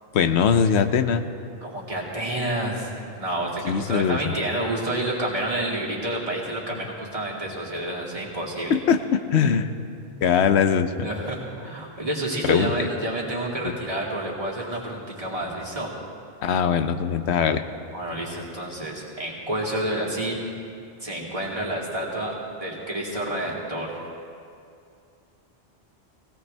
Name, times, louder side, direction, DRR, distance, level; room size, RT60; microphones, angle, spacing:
voice 1, 0.1-1.2 3.6-4.2 8.7-9.7 10.2-11.1 12.4-12.7 13.6-13.7 16.4-17.6, left 7 dB, 90° left, 9 dB, 1.0 m, -21 dB
voice 2, 1.6-8.7 11.0-15.9 17.9-20.4 21.0-23.9, right 1 dB, 30° right, -5 dB, 2.6 m, -29 dB
20.0 x 17.0 x 3.3 m, 2.5 s
omnidirectional pair, 1.1 m